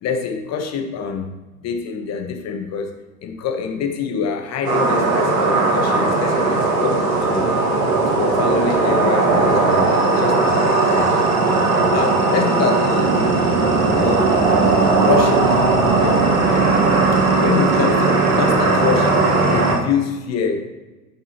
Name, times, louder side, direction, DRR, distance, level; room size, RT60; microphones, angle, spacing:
voice 1, 0.0-1.3 1.6-7.5 8.1-11.1 11.9-13.2 14.0-14.3 15.0-15.6 16.0-16.3 17.4-20.6, left 6 dB, 35° left, 5 dB, 1.0 m, -25 dB
sound 1, 4.6-19.8, right 3 dB, 70° right, 1.9 m, -17 dB
8.6 x 5.3 x 2.9 m, 1.1 s
hypercardioid pair, 85°, 45 cm